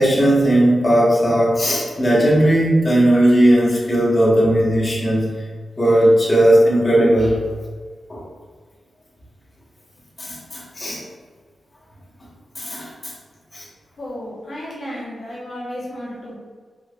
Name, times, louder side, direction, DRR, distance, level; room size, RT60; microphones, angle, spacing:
voice 1, 0.0-5.2 5.8-7.4 8.1-8.2 10.2-11.0 12.6-13.1 13.5-13.6, right 1 dB, 30° left, -6 dB, 1.4 m, -16 dB
voice 2, 14.0-16.4, equal, 55° left, -7 dB, 1.2 m, -33 dB
4.8 x 3.9 x 2.5 m, 1.5 s
wide cardioid pair, 110°, 0 cm